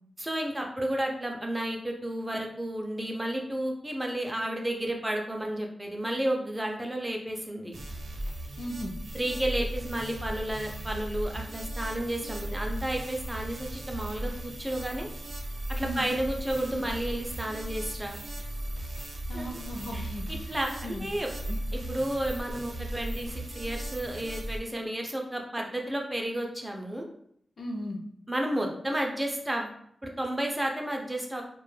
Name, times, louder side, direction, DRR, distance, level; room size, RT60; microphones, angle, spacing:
voice 1, 0.2-7.7 9.1-15.1 15.7-18.2 19.3-19.6 19.9-21.3 21.7-27.1 28.3-29.7 30.0-31.4, right 1 dB, 15° right, 1 dB, 0.4 m, -32 dB
sound 1, 7.7-24.6, right 1 dB, 85° right, 0.5 m, -37 dB
voice 2, 8.6-8.9 15.8-16.1 19.3-21.1 21.5-21.6 27.6-28.0, equal, 60° left, 1 dB, 0.4 m, -37 dB
2.2 x 2.0 x 3.1 m, 0.68 s
wide cardioid pair, 120°, 0 cm